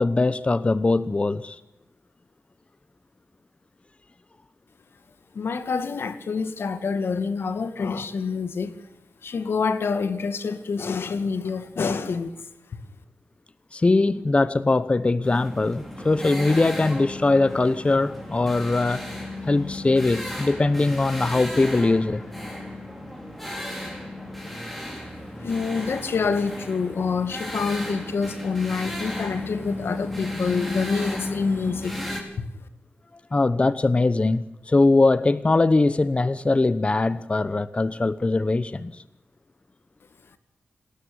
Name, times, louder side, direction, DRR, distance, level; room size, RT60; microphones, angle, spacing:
voice 1, 0.0-1.6 13.7-19.0 19.4-22.3 33.3-39.0, left 3 dB, 30° left, 0.9 m, -21 dB
voice 2, 5.3-8.7 9.2-12.3 25.4-31.9, left 5 dB, 80° left, 2.2 m, -27 dB
sound 1, 15.2-32.2, left 1 dB, 5° left, 5.5 m, -34 dB
27.5 x 13.5 x 9.5 m
wide cardioid pair, 90°, 4 cm